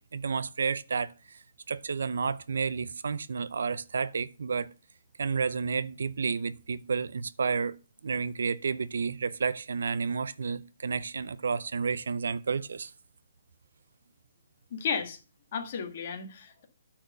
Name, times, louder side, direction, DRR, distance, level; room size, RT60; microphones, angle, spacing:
voice 1, 0.1-1.4 1.7-4.7 5.2-7.8 8.0-12.9, right 5 dB, 80° right, 0.6 m, -31 dB
voice 2, 14.7-15.2 15.5-16.6, left 6 dB, 40° left, 1.7 m, -33 dB
8.6 x 4.4 x 6.6 m
hypercardioid pair, 170°, 0 cm